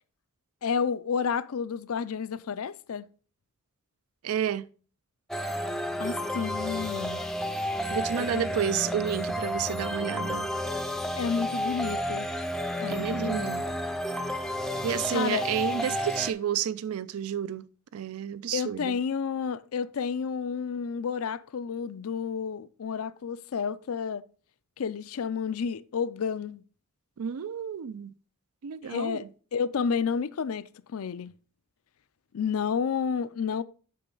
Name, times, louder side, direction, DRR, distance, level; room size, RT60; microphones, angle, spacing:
voice 1, 0.6-3.1 6.0-7.2 8.2-8.7 11.2-12.3 12.8-13.5 15.1-15.5 18.5-24.2 24.8-26.6 28.8-29.2 29.5-31.3 32.3-33.6, left 6 dB, 75° left, 0.4 m, -31 dB
voice 2, 4.2-4.7 7.9-10.5 12.9-13.6 14.8-17.7 17.9-19.0 27.2-28.1 28.6-29.3, right 9 dB, 80° right, 0.4 m, -30 dB
sound 1, 5.3-16.3, equal, ahead, 0.4 m, -31 dB
8.4 x 6.0 x 3.8 m
head